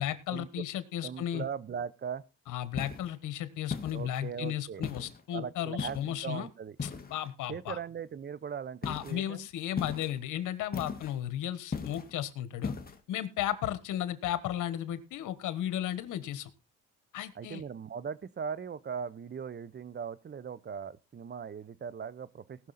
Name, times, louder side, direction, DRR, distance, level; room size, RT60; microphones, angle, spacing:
voice 1, 0.0-1.4 2.5-6.5 6.8-7.8 8.8-12.7 13.1-16.5 17.1-17.6, left 11 dB, 85° left, 1.3 m, -34 dB
voice 2, 1.0-2.2 3.9-4.9 5.3-6.8 7.5-9.5 17.3-22.7, right 7 dB, 35° right, 0.8 m, -39 dB
sound 1, 2.8-3.1 3.7-4.3 4.8-5.2 5.8-6.2 6.8-7.3 8.8-9.2 9.8-10.2 10.7-11.2 11.7-12.1 12.6-13.0, left 5 dB, 30° left, 1.8 m, -37 dB
18.5 x 6.4 x 4.2 m
cardioid pair, 90°, 30 cm